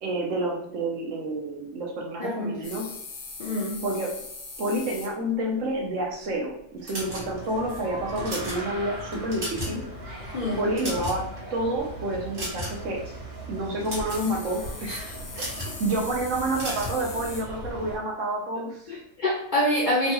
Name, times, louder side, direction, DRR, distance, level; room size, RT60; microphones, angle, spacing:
voice 1, 0.0-2.9 3.8-4.2 4.6-9.8 10.6-13.1 13.5-15.0 15.4-19.0, right 1 dB, 70° right, -1 dB, 1.0 m, -29 dB
voice 2, 2.2-2.6 3.4-3.8 10.3-10.6 14.9-15.0 18.9-20.1, left 1 dB, 60° left, -5 dB, 0.5 m, -26 dB
sound 1, 2.6-5.1 7.3-7.4 7.7-8.2 9.3-9.4 10.9-11.0 14.1-17.4, left 4 dB, 85° left, 1.1 m, -40 dB
sound 2, 6.8-7.6 8.1-8.6 9.1-9.8 10.1-10.3 10.6-11.4 12.3-12.9 13.6-14.2 15.3-15.7 16.5-17.0, equal, 45° right, 1.2 m, -34 dB
sound 3, 7.0-18.0, right 1 dB, 85° right, 1.4 m, -39 dB
3.0 x 2.3 x 2.9 m, 0.73 s
omnidirectional pair, 1.4 m